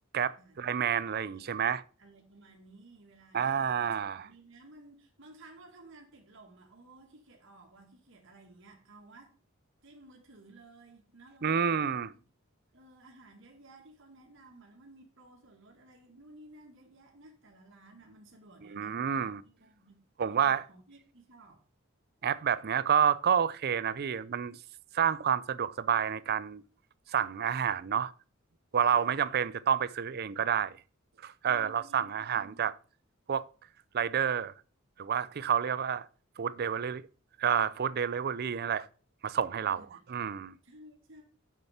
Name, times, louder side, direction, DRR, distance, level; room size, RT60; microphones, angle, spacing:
voice 1, 0.1-1.8 3.3-4.2 11.4-12.1 18.7-19.4 20.2-20.6 22.2-24.6 24.9-26.6 27.1-28.1 28.7-30.7 31.2-32.7 33.3-33.5 33.9-34.5 35.0-36.1 36.4-37.0 37.4-38.9 39.2-39.8 40.1-40.5, right 8 dB, 50° right, 0.5 m, -29 dB
voice 2, 2.0-9.4 9.8-12.0 12.7-20.0 20.3-21.6 28.9-29.4 31.5-32.6 39.8-40.3 40.6-41.2, right 2 dB, 65° right, 2.1 m, -55 dB
6.7 x 6.6 x 5.8 m
head